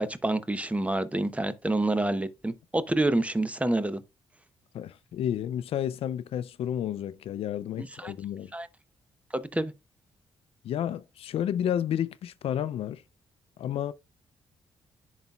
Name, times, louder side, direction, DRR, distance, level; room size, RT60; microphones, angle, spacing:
voice 1, 0.0-4.0 7.8-8.1 8.5-8.7 9.3-9.7, right 2 dB, 15° right, 0.7 m, -28 dB
voice 2, 4.7-8.5 10.6-13.0 13.6-13.9, left 10 dB, 75° left, 0.4 m, -31 dB
10.5 x 4.0 x 2.3 m
cardioid pair, 70°, 10 cm